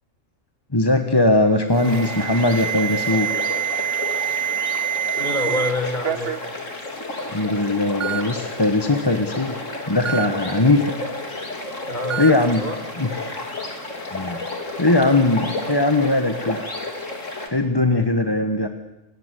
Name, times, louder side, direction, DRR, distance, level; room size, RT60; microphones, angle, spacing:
voice 1, 0.7-3.3 7.3-9.6 9.9-10.9 12.2-12.6 13.0-13.4 14.1-14.4 14.8-16.6 17.5-18.7, left 2 dB, 20° left, 7 dB, 1.4 m, -20 dB
Alarm, 1.7-5.7 6.0-6.5 7.3-7.4 8.0-8.2 10.1-10.3 12.1-12.3, right 10 dB, 50° right, 1.2 m, -26 dB
sound 1, 1.8-17.5, left 2 dB, 70° left, 3.8 m, -32 dB
voice 2, 5.1-6.4 11.9-12.8, left 1 dB, 35° left, 5 dB, 4.4 m, -27 dB
26.5 x 20.5 x 8.3 m, 0.93 s
omnidirectional pair, 1.4 m